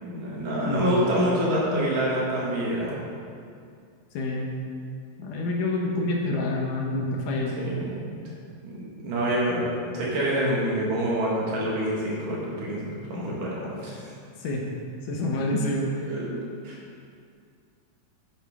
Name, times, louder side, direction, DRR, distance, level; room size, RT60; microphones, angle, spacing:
voice 1, 0.0-3.0 7.6-8.1 8.6-14.1 16.1-16.8, equal, 65° right, -5 dB, 3.3 m, -27 dB
voice 2, 0.7-1.0 4.1-4.6 5.2-7.6 14.4-14.7 15.1-16.1, left 2 dB, 70° left, 0 dB, 2.4 m, -27 dB
9.7 x 9.5 x 3.6 m, 2.3 s
omnidirectional pair, 4.1 m